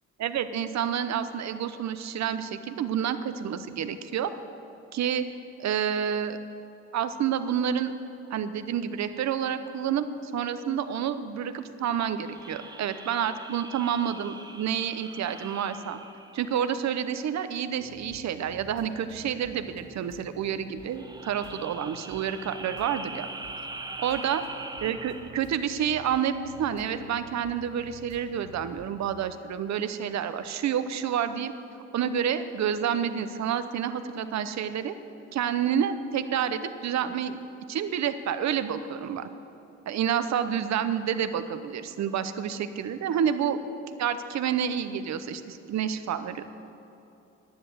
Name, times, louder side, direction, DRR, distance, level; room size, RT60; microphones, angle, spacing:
voice 1, 0.2-4.3 4.9-5.2 5.6-6.4 6.9-7.9 8.3-16.0 16.3-23.3 24.0-24.4 24.8-31.5 31.9-34.9 35.3-37.4 37.7-39.3 39.9-43.6 43.9-46.4, right 8 dB, 65° right, 11 dB, 0.8 m, -29 dB
sound 1, 12.2-17.0 20.8-25.6, right 2 dB, 15° right, 0.8 m, -42 dB
sound 2, 17.8-28.9, right 1 dB, 45° right, 2.1 m, -51 dB
10.5 x 9.9 x 7.9 m, 2.9 s
cardioid pair, 90°, 30 cm